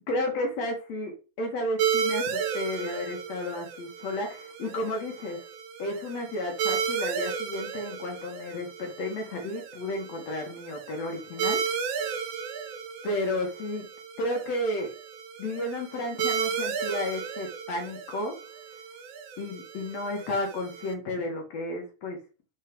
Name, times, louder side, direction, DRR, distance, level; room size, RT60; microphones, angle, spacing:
voice 1, 0.0-5.4 5.8-11.6 13.0-13.9 14.2-14.9 15.4-18.3 19.4-22.2, left 1 dB, 65° left, 2 dB, 2.4 m, -32 dB
sound 1, 1.8-20.9, right 7 dB, 65° right, 1.7 m, -34 dB
4.6 x 4.6 x 5.1 m, 0.33 s
omnidirectional pair, 3.7 m